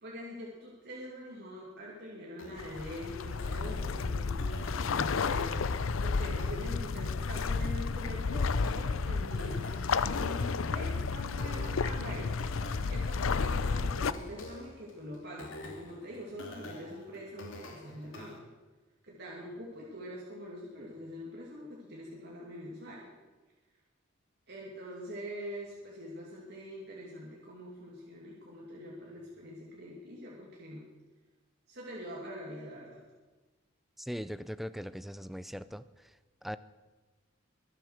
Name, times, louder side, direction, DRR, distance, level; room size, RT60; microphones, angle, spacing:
voice 1, 0.0-12.5 12.8-18.4 19.0-23.1 24.5-30.8 31.7-33.0, equal, 55° right, -4 dB, 2.7 m, -44 dB
sound 1, 2.4-18.4, left 1 dB, 75° left, 2.6 m, -48 dB
sound 2, 2.6-14.1, left 4 dB, 90° left, 0.6 m, -32 dB
voice 2, 34.0-35.8 36.4-36.6, equal, ahead, 14 dB, 0.4 m, -39 dB
23.0 x 7.8 x 6.5 m, 1.2 s
head